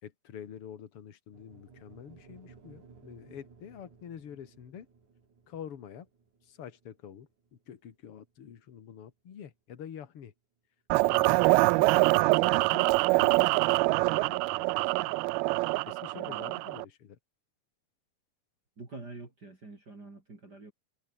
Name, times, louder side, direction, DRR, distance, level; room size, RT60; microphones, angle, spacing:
voice 1, 0.0-4.9 5.5-6.1 6.4-10.3 11.0-15.2 15.9-17.2, left 8 dB, 45° left, 2.4 m, -47 dB
sound 1, 1.3-9.6, right 5 dB, 50° right, 5.9 m, -58 dB
sound 2, 10.9-16.9, right 23 dB, 80° right, 2.4 m, -25 dB
voice 2, 16.1-16.5 18.8-20.7, right 3 dB, 25° right, 4.0 m, -46 dB
omnidirectional pair, 4.5 m